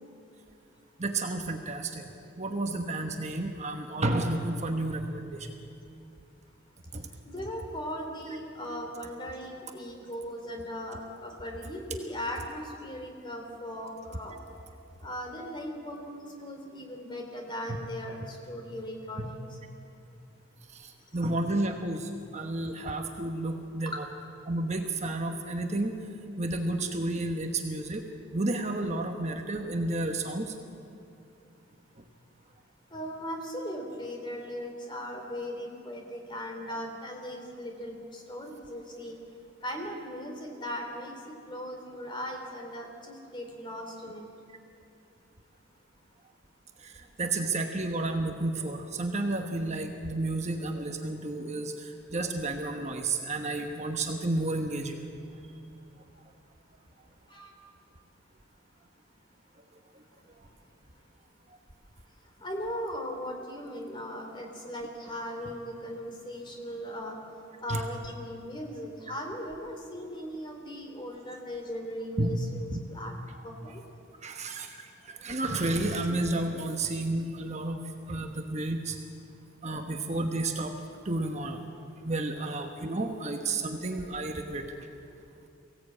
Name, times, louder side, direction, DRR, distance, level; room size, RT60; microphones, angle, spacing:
voice 1, 1.0-2.1 2.4-5.6 6.9-7.1 20.7-24.0 24.4-26.0 26.4-30.5 32.0-32.1 36.7-36.8 46.8-55.0 60.4-60.5 67.7-67.8 72.2-72.3 72.7-72.8 74.2-77.8 78.1-79.0 79.6-80.7 81.0-81.6 82.0-84.9, right 2 dB, 35° right, 4 dB, 1.2 m, -31 dB
voice 2, 7.2-14.4 15.0-19.5 23.8-24.0 32.9-39.2 39.6-44.2 57.3-57.5 60.4-60.5 62.4-67.2 67.6-73.1 73.4-73.8, equal, 25° left, 2 dB, 3.1 m, -38 dB
23.0 x 16.5 x 8.6 m, 2.6 s
head